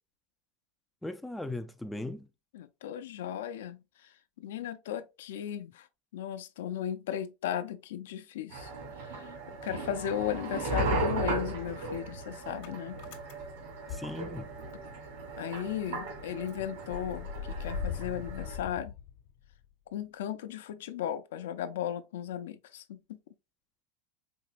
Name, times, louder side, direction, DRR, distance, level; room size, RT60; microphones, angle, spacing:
voice 1, 1.0-2.3 13.9-14.5, left 2 dB, 5° left, 0.3 m, -38 dB
voice 2, 2.5-5.9 6.1-8.7 9.0-9.3 9.6-13.0 15.4-18.9 19.9-23.2, left 10 dB, 85° left, 0.5 m, -36 dB
sound 1, 8.5-18.6, right 2 dB, 80° right, 1.8 m, -36 dB
Motor vehicle (road) / Engine starting, 8.8-10.0 10.2-14.9 15.2-15.3 15.6-19.7, left 7 dB, 65° left, 1.0 m, -42 dB
4.4 x 2.9 x 2.4 m
supercardioid pair, 125°, 0 cm